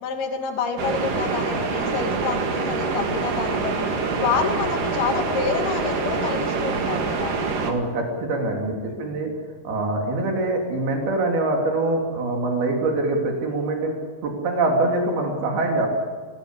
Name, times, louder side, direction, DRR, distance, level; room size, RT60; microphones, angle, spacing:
voice 1, 0.0-3.9 4.2-7.4 8.6-9.2, left 5 dB, 80° left, 3 dB, 4.4 m, -28 dB
sound 1, 0.8-7.7, right 4 dB, 60° right, 3.7 m, -25 dB
voice 2, 7.6-9.3 9.7-13.9 14.2-15.9, right 2 dB, 80° right, 1 dB, 5.1 m, -24 dB
24.5 x 18.5 x 8.4 m, 1.5 s
omnidirectional pair, 4.4 m